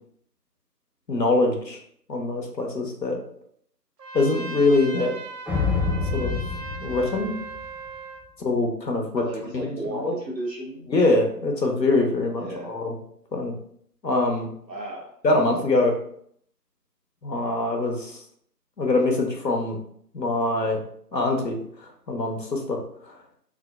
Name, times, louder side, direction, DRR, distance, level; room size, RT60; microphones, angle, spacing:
voice 1, 1.1-1.8 2.1-3.2 4.1-5.2 6.1-6.4 6.8-7.4 8.4-9.2 9.5-10.1 10.9-12.9 13.3-13.5 14.0-14.5 15.2-15.9 17.2-18.2 18.8-19.8 20.1-20.8 21.1-21.6 22.1-22.8 23.0-23.1, left 2 dB, 80° left, 2 dB, 0.9 m, -23 dB
Trumpet, 4.0-8.3, right 3 dB, 75° right, 0.6 m, -38 dB
sound 1, 5.5-7.9, left 4 dB, 5° right, 0.4 m, -27 dB
voice 2, 9.1-10.9 12.4-12.8 14.7-15.1, right 1 dB, 90° right, -1 dB, 1.1 m, -34 dB
3.6 x 2.1 x 2.2 m, 0.65 s
figure-of-eight pair, 170°, 49 cm